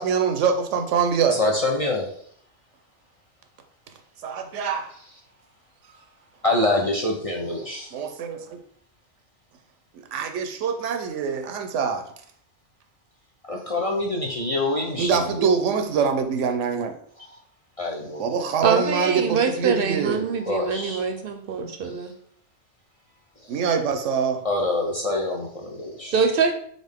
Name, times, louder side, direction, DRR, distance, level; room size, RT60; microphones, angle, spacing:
voice 1, 0.0-1.4 4.2-4.9 7.9-8.6 9.9-12.0 15.0-16.9 18.2-20.3 23.5-24.4, right 6 dB, 85° right, 6 dB, 1.0 m, -24 dB
voice 2, 1.3-2.1 6.4-8.1 13.5-15.5 17.2-17.4 17.8-18.4 20.5-21.0 21.8-22.1 23.4-23.5 24.4-26.2, left 2 dB, 40° left, -1 dB, 0.6 m, -26 dB
voice 3, 18.6-22.1 26.1-26.5, right 5 dB, 60° right, 6 dB, 0.7 m, -24 dB
4.0 x 3.8 x 3.5 m, 0.63 s
omnidirectional pair, 1.2 m